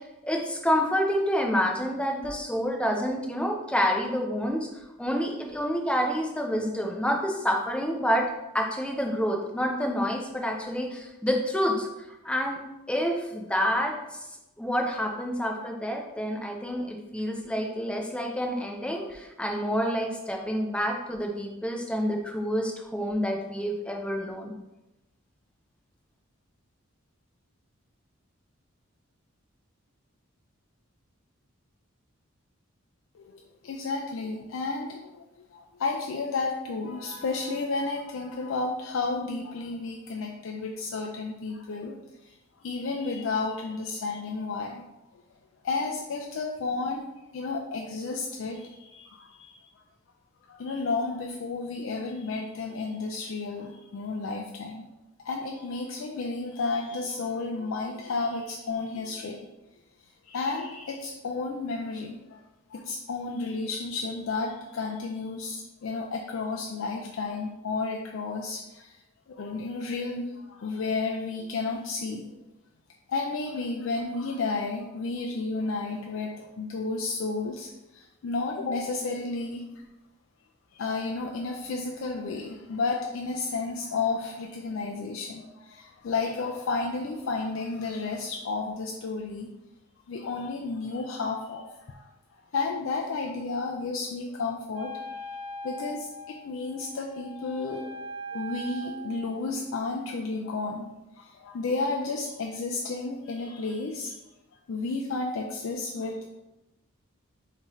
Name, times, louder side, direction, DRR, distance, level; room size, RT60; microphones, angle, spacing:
voice 1, 0.2-8.2 8.5-12.6 12.9-14.3 14.6-24.5, equal, 5° left, 1 dB, 0.4 m, -28 dB
voice 2, 33.1-35.3 35.5-44.9 45.6-47.0 47.3-49.6 50.4-54.9 55.2-59.5 60.0-62.4 62.7-69.0 69.3-72.4 73.1-79.6 80.7-89.5 90.1-92.1 92.5-95.0 95.6-97.9 98.3-100.9 101.1-104.2 104.7-106.3, left 3 dB, 70° left, 1 dB, 0.4 m, -32 dB
Wind instrument woodwind instrument, 94.7-99.3, equal, 65° right, 0.8 m, -40 dB
5.7 x 2.7 x 3.0 m, 0.98 s
head